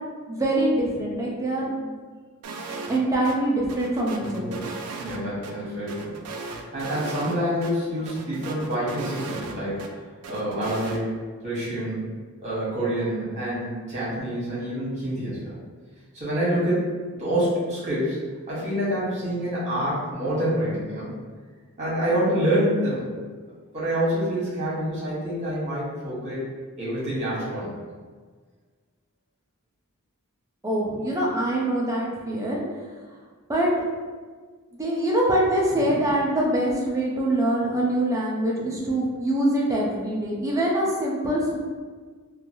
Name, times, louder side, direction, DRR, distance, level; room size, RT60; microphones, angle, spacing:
voice 1, 0.3-1.9 2.9-4.6 30.6-32.6 33.5-33.7 34.7-41.6, right 1 dB, 15° right, -4 dB, 0.5 m, -24 dB
sound 1, 2.4-3.0 3.2-3.4 3.7-5.5 5.9-7.4 7.6-7.7 8.1-9.9 10.2-11.0, right 4 dB, 80° right, 0.4 m, -36 dB
voice 2, 4.2-4.5 5.0-9.9 10.3-11.1 11.4-12.1 12.4-15.5 16.1-18.2 18.5-21.1 21.8-23.1 23.7-26.4 26.8-27.7 35.8-35.9, equal, 30° right, -8 dB, 1.3 m, -27 dB
3.1 x 2.3 x 2.6 m, 1.5 s
head